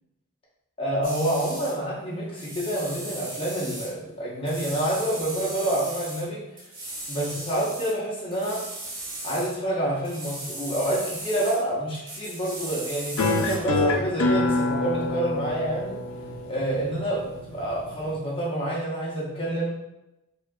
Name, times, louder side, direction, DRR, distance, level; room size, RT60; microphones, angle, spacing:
voice 1, 0.8-6.4 7.1-8.6 9.2-16.0 16.5-19.7, right 1 dB, 25° left, -7 dB, 1.1 m, -28 dB
sound 1, 1.0-1.8 2.3-3.9 4.4-6.3 6.6-8.0 8.3-9.6 10.0-11.6 11.9-13.7, right 1 dB, 40° right, 0.8 m, -37 dB
sound 2, 13.2-18.2, left 2 dB, 70° left, 0.5 m, -27 dB
4.2 x 2.7 x 2.4 m, 0.93 s
head